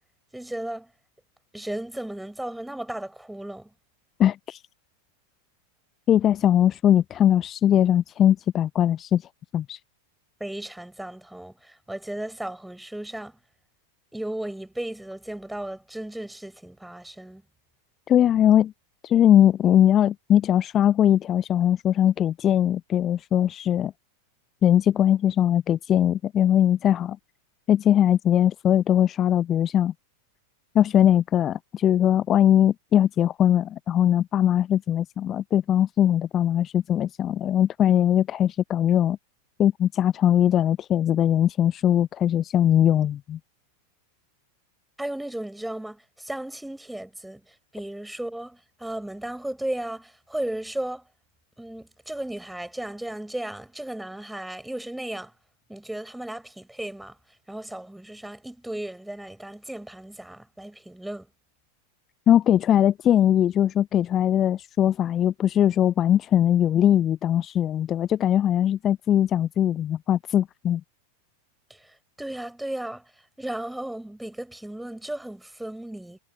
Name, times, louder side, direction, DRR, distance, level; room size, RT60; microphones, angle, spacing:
voice 1, 0.3-0.9 1.5-3.7 10.4-13.4 14.1-17.4 45.0-51.0 51.6-55.3 55.7-57.2 57.5-61.3 71.7-73.1 73.4-76.2, right 1 dB, 5° right, 5.9 m, -35 dB
voice 2, 4.2-4.6 6.1-9.3 9.5-9.8 18.1-18.7 19.0-23.9 24.6-27.2 27.7-29.9 30.7-39.2 39.6-43.4 62.3-70.8, left 10 dB, 30° left, 0.7 m, -20 dB
figure-of-eight pair, 90°, 0 cm